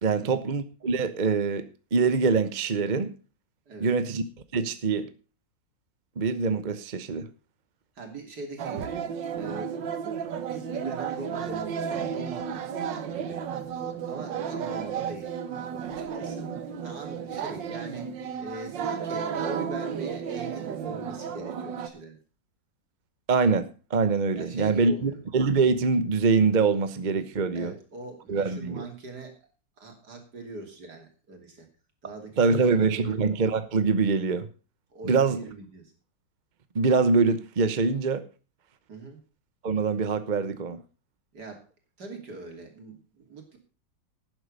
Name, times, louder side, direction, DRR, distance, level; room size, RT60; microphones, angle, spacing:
voice 1, 0.0-3.1 3.8-4.2 4.5-5.1 6.2-7.3 23.3-27.7 28.3-28.9 32.4-34.5 35.0-35.4 36.7-38.2 39.6-40.8, right 4 dB, 35° right, 0.7 m, -24 dB
voice 2, 8.0-9.0 9.3-12.5 13.1-13.4 14.0-15.3 15.8-16.5 16.8-18.1 18.4-22.2 24.4-25.2 27.5-29.4 29.8-31.7 32.0-33.2 34.9-35.9 38.9-39.2 41.3-41.6 42.0-43.6, right 3 dB, 60° right, 3.4 m, -41 dB
sound 1, 8.6-21.9, right 7 dB, 80° right, 1.8 m, -33 dB
12.0 x 9.6 x 5.4 m
omnidirectional pair, 2.0 m